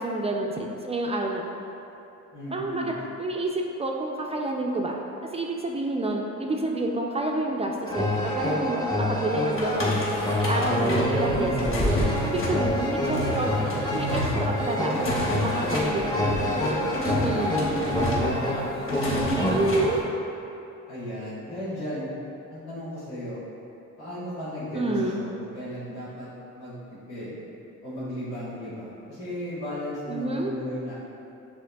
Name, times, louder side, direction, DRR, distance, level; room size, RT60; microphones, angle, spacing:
voice 1, 0.0-1.6 2.5-5.0 5.3-10.0 10.4-11.7 12.2-13.5 13.9-16.4 17.0-17.6 19.5-20.0 24.7-25.2 30.1-30.5, right 2 dB, 20° right, 0 dB, 0.3 m, -29 dB
voice 2, 2.3-3.0 15.6-18.7 19.1-19.9 20.9-22.1 22.5-23.4 24.0-26.8 27.1-27.4 27.8-30.9, equal, 90° left, -13 dB, 1.3 m, -35 dB
sound 1, 7.9-19.9, left 1 dB, 15° left, 0.8 m, -27 dB
sound 2, 9.6-20.0, equal, 45° left, 1.1 m, -31 dB
6.2 x 3.0 x 2.2 m, 2.9 s
cardioid pair, 90°, 30 cm